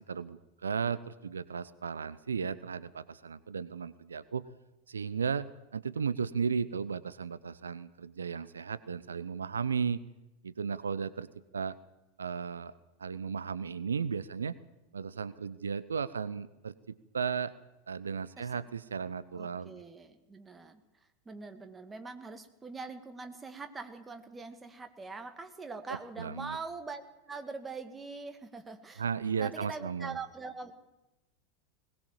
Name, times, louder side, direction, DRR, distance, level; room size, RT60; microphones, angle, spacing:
voice 1, 0.0-4.4 4.9-5.5 5.7-10.0 10.4-11.3 11.5-11.8 12.2-12.7 13.0-14.6 14.9-17.5 17.9-19.8 26.2-26.6 29.0-30.2, right 6 dB, 75° right, 16 dB, 0.7 m, -35 dB
voice 2, 19.3-29.0 29.4-30.7, right 4 dB, 15° right, 6 dB, 2.2 m, -43 dB
20.5 x 19.0 x 7.4 m, 0.99 s
figure-of-eight pair, 90°, 0 cm